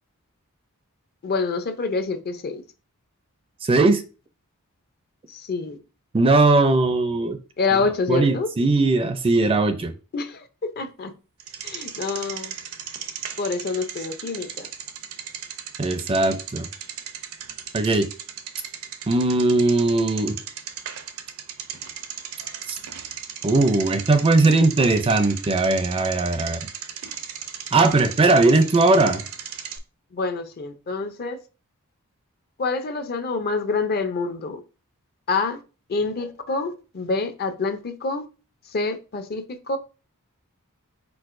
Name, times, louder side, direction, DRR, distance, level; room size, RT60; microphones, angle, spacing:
voice 1, 1.2-2.6 5.3-5.8 7.6-8.5 10.1-11.1 11.6-12.5 13.4-14.7 30.1-31.4 32.6-34.6 35.3-35.6 35.9-38.3 38.7-39.8, left 4 dB, 45° left, 0.6 m, -27 dB
voice 2, 3.6-4.0 6.1-7.4 8.1-9.9 15.8-16.7 17.7-18.1 19.1-20.4 22.7-22.8 23.4-26.7 27.7-29.2, right 2 dB, 25° right, 0.4 m, -19 dB
Bicycle, 11.4-29.8, right 8 dB, 75° right, 0.6 m, -36 dB
4.6 x 4.1 x 2.5 m
head